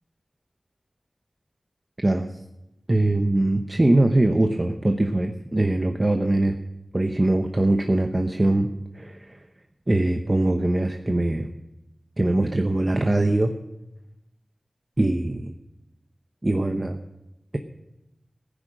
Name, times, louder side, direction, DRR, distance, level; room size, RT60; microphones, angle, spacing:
voice 1, 2.0-2.4 2.9-6.6 6.9-9.4 9.9-11.5 12.2-13.5 15.0-15.5 16.4-17.0, right 2 dB, 30° right, 5 dB, 0.9 m, -22 dB
14.5 x 10.0 x 6.3 m, 0.94 s
wide cardioid pair, 80°, 0 cm